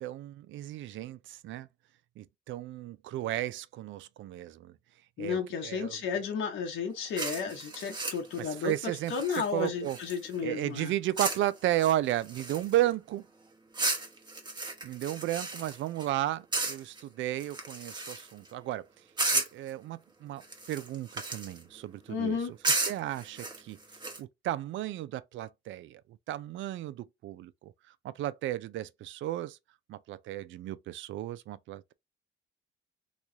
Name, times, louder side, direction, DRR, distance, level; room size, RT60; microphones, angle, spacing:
voice 1, 0.0-1.7 2.2-4.7 5.2-6.2 8.4-10.0 10.4-13.2 14.8-18.9 19.3-23.8 24.2-27.7 28.0-29.6 29.9-31.9, right 14 dB, 75° right, 0.4 m, -34 dB
voice 2, 5.2-8.7 9.1-10.9 22.1-22.5, left 6 dB, 85° left, 1.1 m, -33 dB
sound 1, 7.2-10.4 11.2-11.5 11.8-12.9 13.7-16.1 16.5-17.0 17.4-18.5 19.2-19.7 20.4-21.6 22.6-24.2, right 3 dB, 20° right, 1.1 m, -34 dB
3.1 x 2.3 x 3.9 m
cardioid pair, 90°, 20 cm